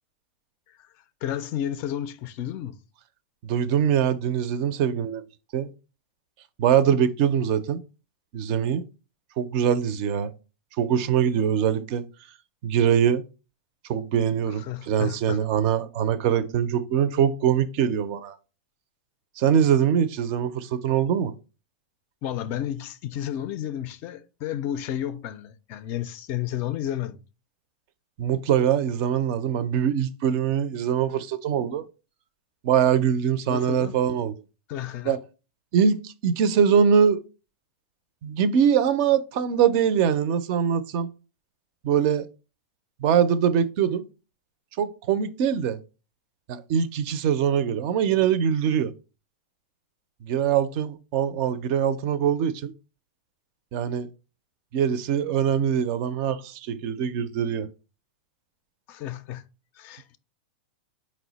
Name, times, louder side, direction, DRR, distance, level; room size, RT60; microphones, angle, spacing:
voice 1, 1.2-2.8 14.6-15.4 22.2-27.2 33.5-33.9 34.7-35.2 58.9-59.5 59.8-60.2, left 11 dB, 40° left, 0.3 m, -32 dB
voice 2, 3.4-5.2 5.5-5.7 6.6-7.8 8.3-8.8 9.4-10.3 10.8-12.1 12.6-13.2 13.9-18.4 19.4-21.3 28.2-31.8 32.6-34.3 35.1-35.2 35.7-37.2 38.2-41.1 41.8-42.3 43.0-44.0 44.8-45.8 46.5-48.9 50.2-52.7 53.7-54.1 54.7-57.7, right 8 dB, 50° right, 0.4 m, -23 dB
4.4 x 2.0 x 3.9 m
hypercardioid pair, 130°, 5 cm